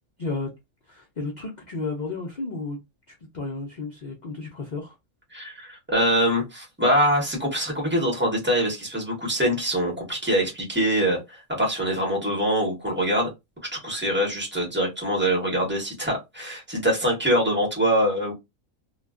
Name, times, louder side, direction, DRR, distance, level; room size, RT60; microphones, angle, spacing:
voice 1, 0.9-2.8 3.1-4.9, left 3 dB, 65° left, 0.4 m, -32 dB
voice 2, 5.3-13.3 13.8-18.3, equal, 10° right, 0.8 m, -24 dB
2.4 x 2.2 x 2.3 m
omnidirectional pair, 1.5 m